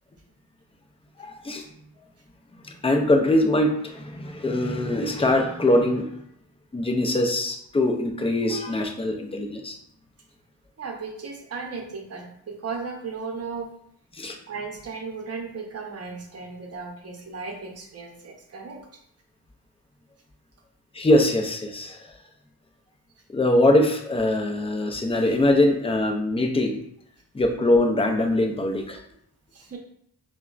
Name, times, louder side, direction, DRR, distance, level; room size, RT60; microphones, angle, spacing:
voice 1, 1.2-1.7 2.6-6.1 6.7-9.8 14.1-14.4 20.9-22.1 23.3-26.8 27.3-29.0, left 1 dB, 15° left, 4 dB, 0.4 m, -22 dB
voice 2, 10.8-13.7 14.5-18.8 29.5-29.8, right 4 dB, 40° right, 1 dB, 0.8 m, -35 dB
4.8 x 2.2 x 2.3 m, 0.68 s
cardioid pair, 80°, 39 cm